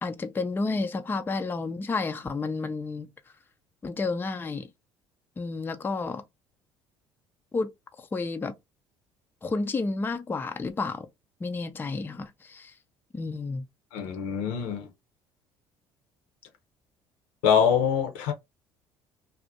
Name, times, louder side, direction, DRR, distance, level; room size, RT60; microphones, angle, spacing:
voice 1, 0.0-3.1 3.8-4.7 5.4-6.2 7.5-7.7 8.0-8.5 9.4-11.1 11.4-12.7 13.1-13.7, left 3 dB, 20° left, 0.4 m, -31 dB
voice 2, 13.9-14.9 17.4-18.3, left 7 dB, 80° left, 0.7 m, -24 dB
2.4 x 2.0 x 2.6 m
hypercardioid pair, 65°, 12 cm